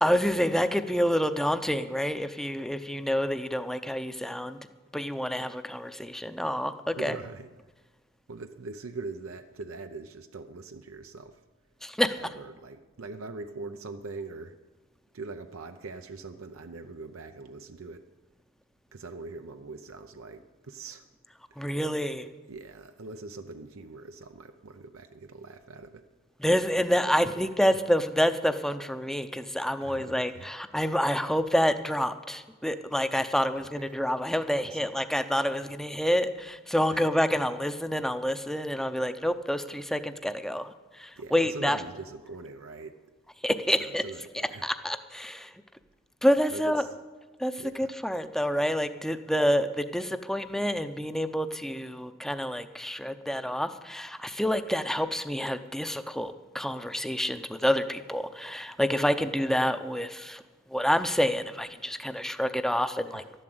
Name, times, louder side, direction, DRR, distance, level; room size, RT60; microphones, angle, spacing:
voice 1, 0.0-4.6 4.9-7.2 11.8-12.2 21.6-22.3 26.4-41.8 43.4-44.0 44.3-45.5 46.2-46.9 47.4-60.4 60.7-63.4, equal, ahead, 9 dB, 0.6 m, -28 dB
voice 2, 6.9-7.5 8.3-11.4 12.2-14.6 15.1-18.0 18.9-21.0 21.5-21.8 22.5-26.0 26.9-27.8 29.8-30.5 33.6-33.9 34.6-34.9 36.9-37.0 41.2-43.0 43.8-44.7 46.5-46.9 47.6-47.9 63.1-63.3, right 3 dB, 85° right, 7 dB, 0.7 m, -42 dB
12.5 x 11.0 x 7.9 m, 1.3 s
head